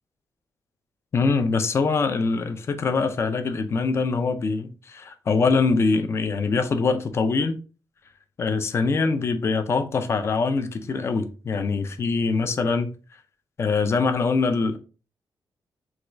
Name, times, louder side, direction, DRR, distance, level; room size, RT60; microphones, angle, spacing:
voice 1, 1.1-7.6 8.4-12.9 13.6-14.8, left 4 dB, 35° left, 0.3 m, -23 dB
3.4 x 2.2 x 3.0 m
wide cardioid pair, 160°, 8 cm